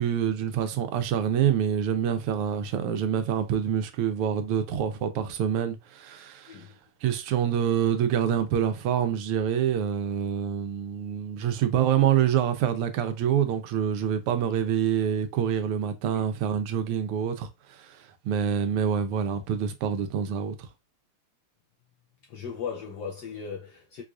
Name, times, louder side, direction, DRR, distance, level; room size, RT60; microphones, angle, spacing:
voice 1, 0.0-6.6 7.0-18.0 18.2-20.7, right 8 dB, 85° right, 1.5 m, -26 dB
voice 2, 6.5-6.8 16.1-16.2 22.3-24.0, left 6 dB, 80° left, 0.9 m, -37 dB
4.6 x 2.4 x 2.4 m
omnidirectional pair, 2.4 m